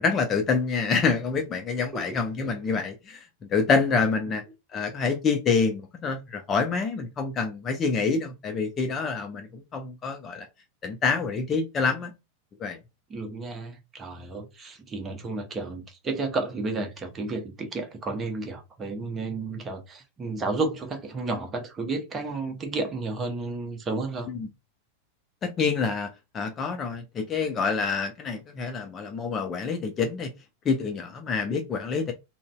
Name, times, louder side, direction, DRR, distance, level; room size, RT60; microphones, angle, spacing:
voice 1, 0.0-4.4 4.7-10.5 10.8-12.1 12.6-12.8 24.3-24.5 25.4-30.3 30.7-32.1, left 5 dB, 25° left, 0.4 m, -27 dB
voice 2, 13.1-24.3, right 3 dB, 20° right, 0.8 m, -32 dB
3.8 x 2.0 x 2.2 m
figure-of-eight pair, 90°, 0 cm